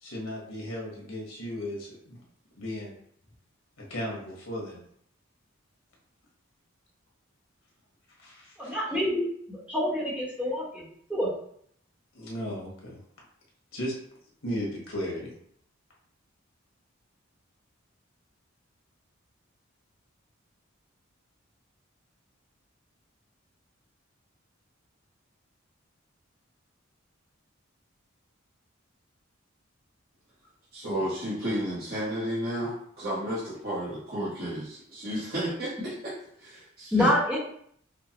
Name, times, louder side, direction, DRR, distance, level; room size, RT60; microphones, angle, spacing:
voice 1, 0.0-2.2 2.6-2.9 3.9-4.8 8.2-8.7 12.1-13.0 13.7-13.9 14.4-15.3, equal, 85° left, -3 dB, 1.4 m, -35 dB
voice 2, 8.6-10.8 11.1-11.3 36.9-37.4, left 1 dB, 5° right, -8 dB, 1.0 m, -27 dB
voice 3, 30.7-37.1, right 1 dB, 50° right, -10 dB, 1.0 m, -32 dB
5.0 x 2.2 x 2.9 m, 0.65 s
head